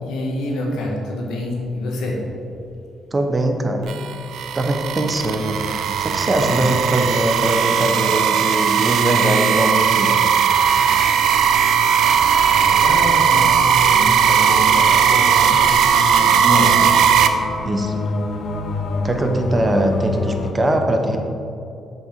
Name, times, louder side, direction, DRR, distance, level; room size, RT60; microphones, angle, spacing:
voice 1, 0.0-2.2 6.4-6.6 12.3-13.6 13.9-15.7 16.2-16.7, left 2 dB, 85° left, -1 dB, 1.6 m, -27 dB
voice 2, 3.1-3.9 4.5-5.6 6.0-10.2 16.4-16.8 17.6-18.0 19.0-21.2, right 1 dB, 25° right, 4 dB, 1.0 m, -21 dB
sound 1, 3.9-17.3, right 8 dB, 75° right, 0.5 m, -17 dB
sound 2, 10.3-20.5, left 3 dB, 60° left, 0.7 m, -29 dB
7.4 x 6.7 x 4.5 m, 2.6 s
cardioid pair, 90°, 0 cm